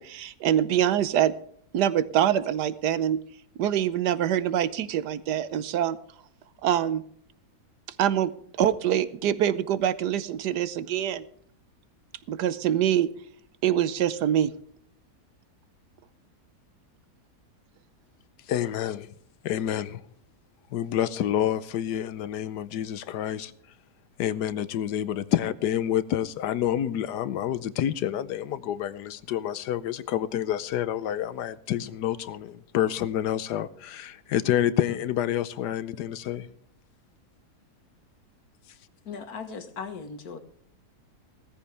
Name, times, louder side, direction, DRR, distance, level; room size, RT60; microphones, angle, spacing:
voice 1, 0.0-1.3 1.7-3.2 3.6-6.0 6.6-7.0 8.0-8.3 8.6-11.2 12.3-13.1 13.6-14.5, right 10 dB, 85° right, 1.4 m, -24 dB
voice 2, 18.5-19.1 19.4-20.0 20.7-23.5 24.2-36.5, left 11 dB, 85° left, 1.3 m, -28 dB
voice 3, 39.1-40.4, left 5 dB, 65° left, 1.8 m, -38 dB
17.0 x 14.0 x 3.4 m
omnidirectional pair, 1.8 m